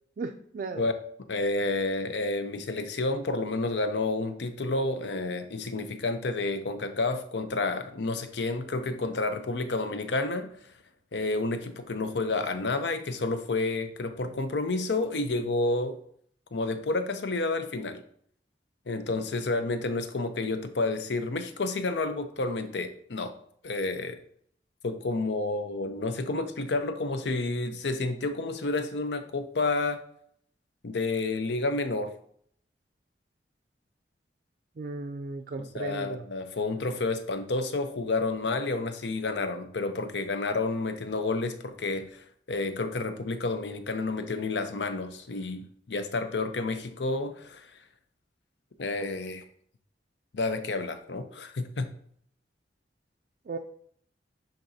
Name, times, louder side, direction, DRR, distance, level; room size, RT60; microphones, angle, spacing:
voice 1, 0.2-0.9 34.8-36.2 53.5-53.6, right 3 dB, 50° right, 3 dB, 0.4 m, -35 dB
voice 2, 1.3-10.5 11.1-16.0 16.5-18.0 18.9-23.3 23.6-24.2 24.8-30.0 30.8-32.1 35.6-47.7 48.8-49.4 50.3-51.9, left 3 dB, 75° left, 9 dB, 0.6 m, -30 dB
10.5 x 3.9 x 2.7 m, 0.65 s
head